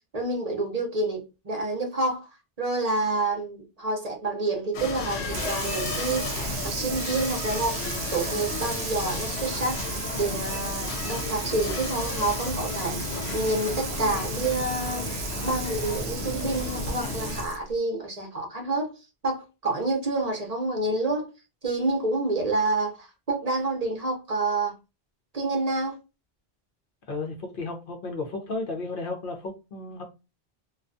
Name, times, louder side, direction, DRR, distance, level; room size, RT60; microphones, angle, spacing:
voice 1, 0.1-2.3 2.6-7.8 8.1-9.8 10.2-15.1 15.4-18.9 19.2-21.3 21.6-24.7 25.3-26.0, right 2 dB, 45° right, 0.7 m, -28 dB
sound 1, 4.7-17.4, left 3 dB, 90° left, 0.9 m, -33 dB
Water tap faucet / Sink (filling or washing), 5.2-17.7, right 6 dB, 80° right, 0.8 m, -36 dB
voice 2, 27.1-30.0, left 3 dB, 60° left, 0.8 m, -33 dB
2.3 x 2.2 x 2.5 m
omnidirectional pair, 1.0 m